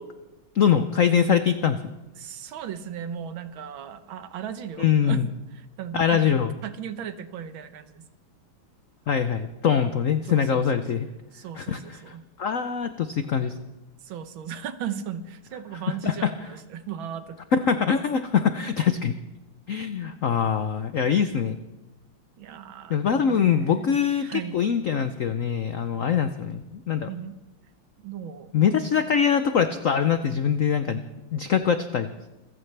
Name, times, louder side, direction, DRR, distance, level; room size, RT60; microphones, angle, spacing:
voice 1, 0.5-1.8 4.8-5.3 5.9-6.5 9.1-11.1 11.6-13.5 15.9-16.3 17.5-19.1 19.7-21.6 22.9-27.1 28.5-31.0 31.3-32.1, left 7 dB, 80° left, 9 dB, 0.7 m, -23 dB
voice 2, 2.1-5.2 5.5-6.2 6.6-8.1 9.7-9.9 10.2-10.8 11.3-12.2 14.0-17.4 19.7-20.2 21.1-21.2 22.4-24.6 27.1-27.3 28.0-28.5, right 9 dB, 70° right, 11 dB, 1.7 m, -37 dB
26.5 x 15.0 x 3.4 m, 1.0 s
omnidirectional pair, 2.4 m